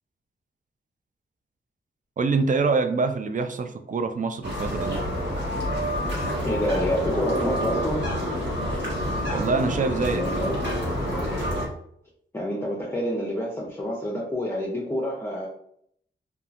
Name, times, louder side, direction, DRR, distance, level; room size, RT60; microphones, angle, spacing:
voice 1, 2.2-5.0 9.3-10.5, right 4 dB, 40° right, 7 dB, 0.4 m, -25 dB
sound 1, 4.4-11.7, equal, 60° right, 1.2 m, -27 dB
voice 2, 6.4-8.1 10.0-10.6 12.3-15.5, left 1 dB, 15° left, -4 dB, 0.7 m, -28 dB
2.7 x 2.4 x 2.5 m, 0.67 s
cardioid pair, 60°, 20 cm